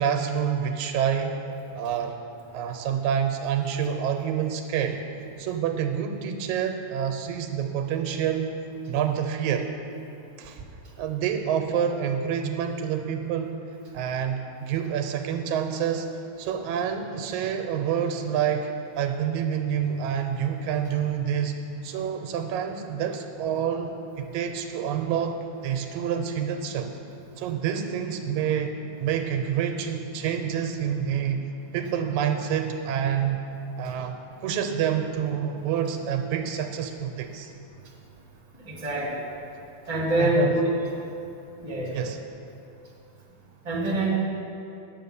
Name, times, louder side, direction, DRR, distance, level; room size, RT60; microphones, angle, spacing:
voice 1, 0.0-1.4 1.8-2.2 2.5-5.0 5.4-8.5 8.9-9.7 10.4-10.6 11.0-13.6 13.9-16.1 16.4-21.6 21.8-26.9 27.4-31.4 31.7-33.4 33.8-37.5 40.2-40.5 41.9-42.2, right 8 dB, 85° right, 6 dB, 2.1 m, -27 dB
voice 2, 38.6-39.2 39.9-40.6 41.6-42.0 43.6-44.1, right 1 dB, 15° right, -4 dB, 1.7 m, -25 dB
9.8 x 6.8 x 7.0 m, 2.7 s
omnidirectional pair, 3.3 m